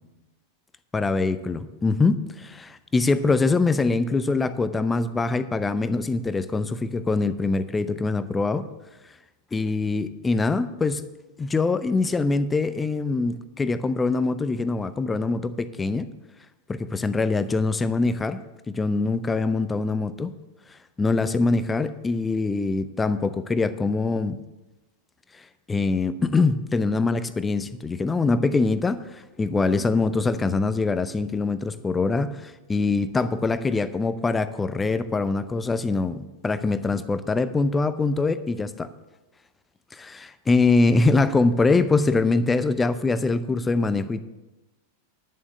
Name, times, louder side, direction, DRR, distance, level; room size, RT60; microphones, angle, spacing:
voice 1, 0.9-8.6 9.5-11.0 11.4-16.1 16.7-18.4 18.7-20.3 21.0-24.4 25.7-38.9 39.9-44.2, left 3 dB, 15° left, 14 dB, 0.6 m, -23 dB
10.5 x 7.2 x 6.6 m, 1.1 s
figure-of-eight pair, 90°, 0 cm